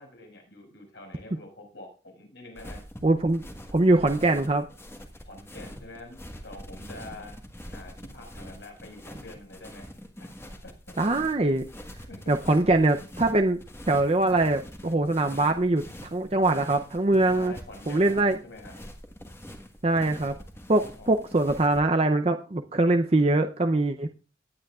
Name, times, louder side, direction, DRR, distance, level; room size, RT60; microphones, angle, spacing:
voice 1, 0.0-2.8 5.3-7.3 7.7-9.9 10.2-10.9 12.1-12.3 17.3-18.7 21.0-21.2, left 2 dB, 75° left, 2 dB, 5.4 m, -46 dB
sound 1, 2.5-21.8, equal, 15° left, 1.5 m, -44 dB
voice 2, 3.0-3.4 3.7-4.6 11.0-11.7 12.3-13.6 13.9-17.5 17.9-18.4 19.8-20.4 20.7-24.1, right 2 dB, 35° right, 6 dB, 0.6 m, -23 dB
18.0 x 9.2 x 2.4 m, 0.34 s
head